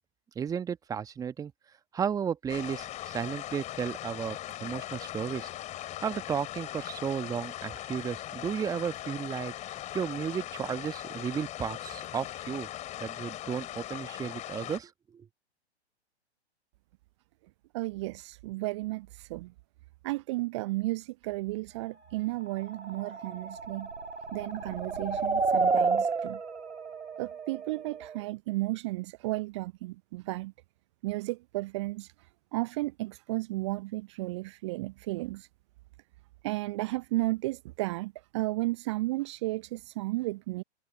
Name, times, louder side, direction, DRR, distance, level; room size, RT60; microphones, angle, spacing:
voice 1, 0.3-1.5 1.9-5.5 6.0-9.5 9.9-12.7 13.0-15.3, right 7 dB, 10° right, 1.3 m, -34 dB
sound 1, 2.5-14.8, left 14 dB, 20° left, 3.7 m, -40 dB
voice 2, 17.7-19.5 20.0-23.9 24.3-26.4 27.2-30.5 31.0-35.5 36.4-40.6, right 20 dB, 25° right, 0.6 m, -33 dB
sound 2, 22.4-28.2, right 4 dB, 75° right, 2.1 m, -31 dB
figure-of-eight pair, 115°, 33 cm